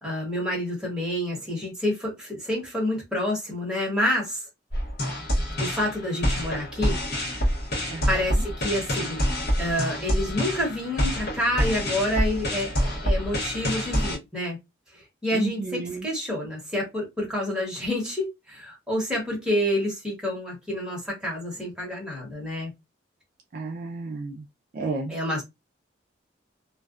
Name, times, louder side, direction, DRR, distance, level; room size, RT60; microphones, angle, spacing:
voice 1, 0.0-4.4 5.6-7.0 8.1-9.2 9.6-14.6 14.9-22.7 25.1-25.4, left 1 dB, 5° right, 1.1 m, -28 dB
sound 1, 4.7-14.2, equal, 55° left, 0.9 m, -27 dB
voice 2, 7.9-8.4 15.3-16.1 23.5-24.4 24.7-25.1, right 3 dB, 45° right, 0.3 m, -32 dB
2.4 x 2.2 x 2.3 m
head